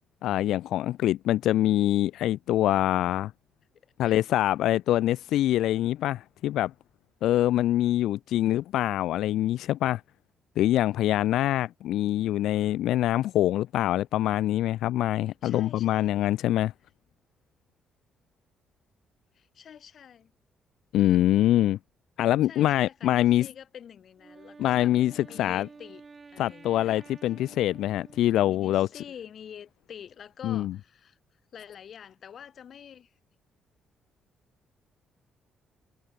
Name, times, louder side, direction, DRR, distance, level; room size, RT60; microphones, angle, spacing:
voice 1, 0.2-3.3 4.0-6.7 7.2-10.0 10.6-16.7 20.9-21.8 22.2-23.5 24.6-25.7 26.4-29.0 30.4-30.7, left 13 dB, 85° left, 0.5 m, -24 dB
voice 2, 4.0-4.4 15.4-16.3 19.3-20.3 22.5-24.9 25.3-26.0 26.3-27.1 28.4-31.2 31.5-33.1, left 8 dB, 60° left, 3.2 m, -47 dB
Wind instrument woodwind instrument, 24.2-28.9, right 4 dB, 30° right, 2.4 m, -51 dB
cardioid pair, 90°, 0 cm